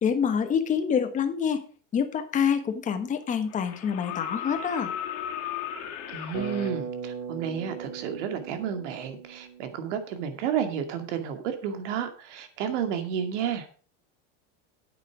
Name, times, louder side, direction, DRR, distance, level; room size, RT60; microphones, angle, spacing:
voice 1, 0.0-1.6 1.9-4.9, left 7 dB, 20° left, 7 dB, 1.3 m, -26 dB
sound 1, 2.4-2.5 3.5-6.7 8.5-8.6, left 9 dB, 40° left, 2.5 m, -35 dB
voice 2, 6.1-13.7, right 8 dB, 70° right, 7 dB, 2.4 m, -31 dB
Bass guitar, 6.3-10.5, right 6 dB, 30° right, 6.1 m, -38 dB
10.0 x 8.5 x 4.8 m, 0.41 s
supercardioid pair, 155°, 38 cm